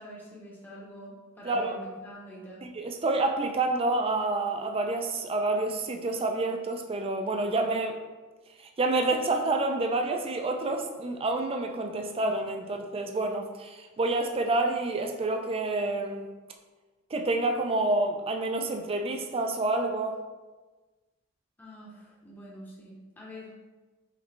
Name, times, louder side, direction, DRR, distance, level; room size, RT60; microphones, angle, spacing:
voice 1, 0.0-2.6 21.6-23.6, equal, 10° left, -5 dB, 0.8 m, -46 dB
voice 2, 1.4-1.8 2.7-8.0 8.8-16.3 17.1-20.2, right 2 dB, 25° right, 4 dB, 0.4 m, -28 dB
4.9 x 3.2 x 3.2 m, 1.3 s
head